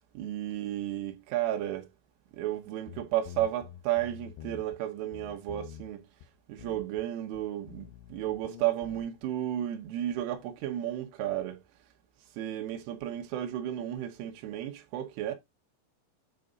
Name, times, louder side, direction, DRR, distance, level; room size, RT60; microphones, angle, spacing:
voice 1, 0.2-1.9 2.3-6.1 6.5-11.6 12.3-15.3, right 12 dB, 90° right, 3.7 m, -33 dB
sound 1, 2.9-4.8 5.1-5.9 6.2-6.3 6.6-7.1 7.3-9.3, left 11 dB, 80° left, 2.8 m, -47 dB
9.3 x 3.8 x 3.8 m
omnidirectional pair, 5.5 m